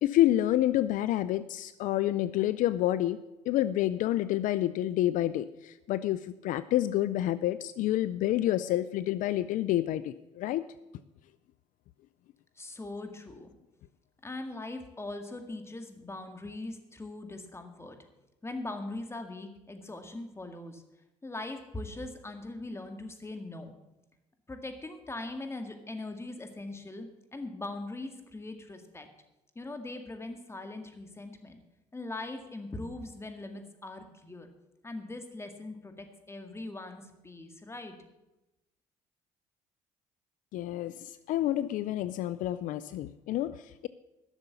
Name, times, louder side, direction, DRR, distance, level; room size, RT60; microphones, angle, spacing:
voice 1, 0.0-3.2 3.5-10.6 40.5-43.9, left 13 dB, 70° left, 15 dB, 0.4 m, -28 dB
voice 2, 12.6-13.5 14.2-18.0 18.4-20.8 21.2-23.8 24.5-29.1 29.6-31.6 31.9-34.5 34.8-38.0, left 2 dB, 20° left, 6 dB, 2.0 m, -41 dB
11.5 x 6.8 x 8.2 m, 0.97 s
supercardioid pair, 70°, 14 cm